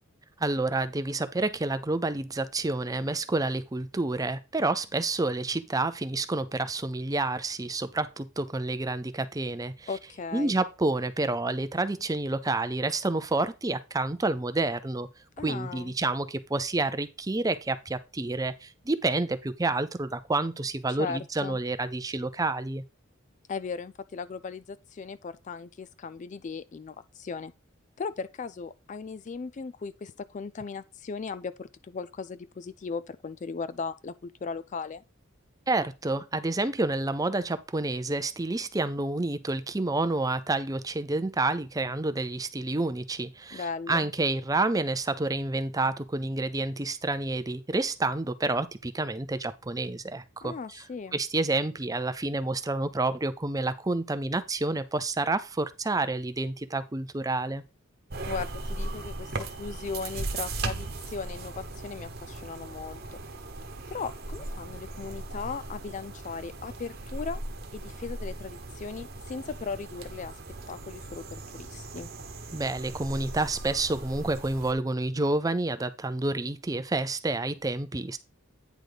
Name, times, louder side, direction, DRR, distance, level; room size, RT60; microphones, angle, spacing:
voice 1, 0.4-9.9 10.3-15.1 15.4-22.8 35.7-50.8 51.1-57.6 72.5-78.2, right 2 dB, 15° right, 0.5 m, -29 dB
voice 2, 9.9-10.6 15.4-15.9 21.0-21.6 23.5-27.5 28.0-35.0 43.5-44.1 50.4-51.2 58.2-63.2 63.9-67.4 67.7-70.3 70.7-72.1, left 5 dB, 35° left, 0.3 m, -37 dB
sound 1, 58.1-74.7, right 2 dB, 50° right, 1.2 m, -38 dB
9.2 x 4.1 x 4.9 m
head